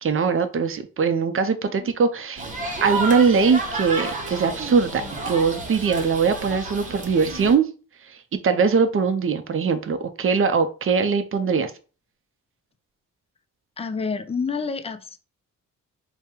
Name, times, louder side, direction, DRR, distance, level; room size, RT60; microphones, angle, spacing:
voice 1, 0.0-2.4 2.8-7.7 8.4-11.7, right 5 dB, 40° right, 10 dB, 0.5 m, -21 dB
sound 1, 2.4-7.6, right 2 dB, 25° right, 0.8 m, -31 dB
voice 2, 13.8-15.2, left 5 dB, 20° left, 10 dB, 0.3 m, -28 dB
3.6 x 2.1 x 4.3 m, 0.36 s
wide cardioid pair, 120°, 33 cm